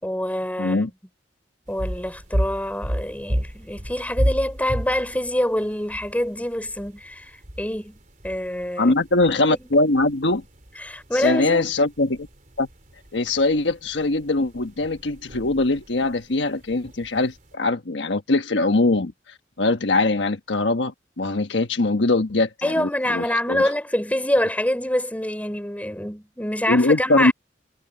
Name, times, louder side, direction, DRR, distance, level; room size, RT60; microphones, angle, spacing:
voice 1, 0.0-0.9 1.7-8.0 8.2-8.9 9.5-9.7 10.8-11.7 22.6-27.3, left 1 dB, 10° left, 3.6 m, -25 dB
voice 2, 0.6-0.9 8.8-10.4 11.1-12.3 12.6-12.7 13.1-19.1 19.6-23.7 26.7-27.3, left 2 dB, 85° left, 1.3 m, -22 dB
sound 1, 1.7-17.5, equal, 45° right, 3.8 m, -33 dB
head